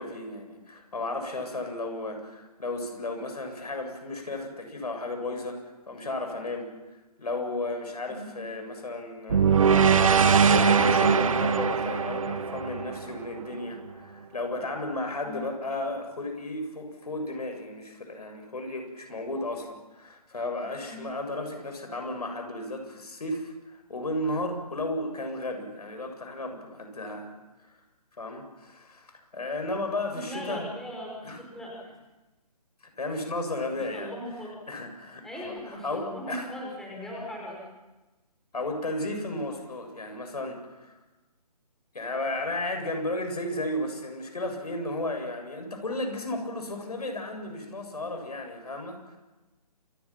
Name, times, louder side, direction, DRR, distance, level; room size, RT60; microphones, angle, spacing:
voice 1, 0.0-6.7 7.2-27.3 27.6-27.8 28.2-30.7 31.2-31.5 33.0-34.1 34.7-36.6 38.5-40.9 41.9-49.2, left 2 dB, 70° left, 5 dB, 7.3 m, -34 dB
sound 1, 9.3-13.6, right 6 dB, 55° right, 1.5 m, -21 dB
voice 2, 30.1-31.9 33.1-33.2 33.7-34.5 35.2-37.6, left 1 dB, ahead, -3 dB, 5.5 m, -39 dB
29.0 x 26.0 x 6.0 m, 1.1 s
figure-of-eight pair, 145°, 21 cm